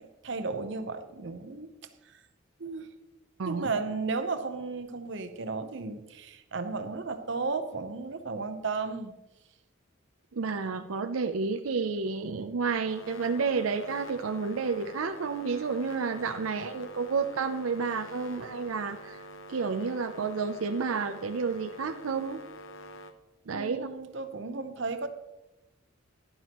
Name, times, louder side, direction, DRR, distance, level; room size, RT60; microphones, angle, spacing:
voice 1, 0.0-1.7 2.0-2.2 2.6-2.9 3.4-9.1 23.5-25.1, right 4 dB, 60° right, 9 dB, 0.8 m, -34 dB
voice 2, 3.4-3.7 10.3-19.2 19.5-22.4 23.5-23.9, right 5 dB, 90° right, 8 dB, 0.5 m, -30 dB
sound 1, 12.9-23.1, equal, 65° left, 0.9 m, -46 dB
12.0 x 11.0 x 3.0 m, 0.99 s
head